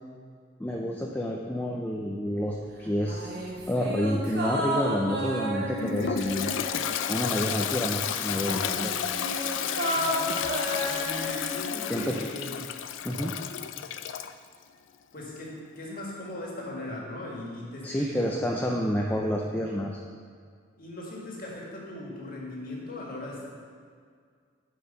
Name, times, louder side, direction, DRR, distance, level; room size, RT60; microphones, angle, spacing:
voice 1, 0.6-3.3 3.7-6.5 7.1-8.9 11.9-12.2 13.0-13.3 17.8-20.0, equal, 10° left, -1 dB, 0.4 m, -29 dB
sound 1, 3.1-7.8 8.1-12.4 12.7-12.8, equal, 50° right, 1.2 m, -33 dB
Toilet flush, 5.8-14.3, left 9 dB, 75° left, 0.4 m, -32 dB
voice 2, 9.8-10.4 10.8-12.7 15.1-18.3 20.8-23.5, left 1 dB, 45° left, -3 dB, 1.8 m, -39 dB
10.0 x 4.6 x 5.5 m, 2.1 s
head